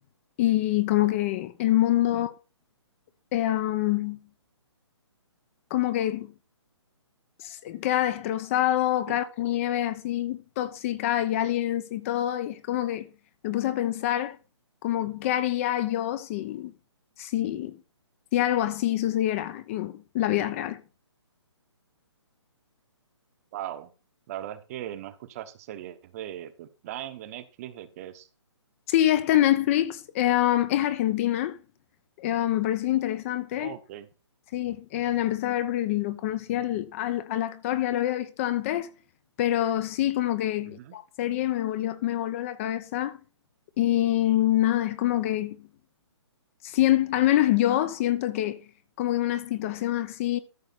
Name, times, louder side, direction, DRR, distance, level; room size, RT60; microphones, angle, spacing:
voice 1, 0.4-2.3 3.3-4.2 5.7-6.3 7.4-13.1 13.4-14.4 14.8-16.7 17.2-17.8 18.3-20.8 28.9-31.6 32.2-33.7 34.5-38.9 39.4-43.2 43.8-45.7 46.6-48.6 49.0-50.4, left 13 dB, 30° left, 0.8 m, -26 dB
voice 2, 23.5-23.9 24.3-28.3 33.6-34.1 40.6-40.9, right 12 dB, 30° right, 1.1 m, -39 dB
13.5 x 6.4 x 4.2 m
hypercardioid pair, 150°, 15 cm